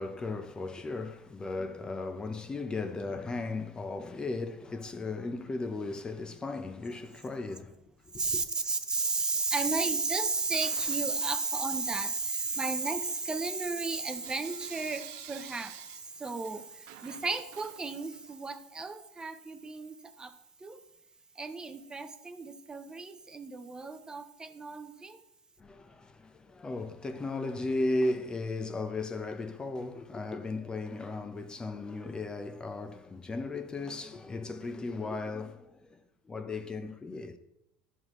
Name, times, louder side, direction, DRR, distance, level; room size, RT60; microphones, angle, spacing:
voice 1, 0.0-8.4 25.6-37.4, left 2 dB, 20° left, 0.7 m, -36 dB
voice 2, 8.1-20.3 20.6-20.8 21.4-25.2, right 3 dB, 20° right, 0.7 m, -33 dB
Bell / Coin (dropping), 10.5-12.0 12.4-18.4, right 13 dB, 70° right, 0.5 m, -52 dB
11.0 x 6.5 x 3.1 m
supercardioid pair, 95°, 4 cm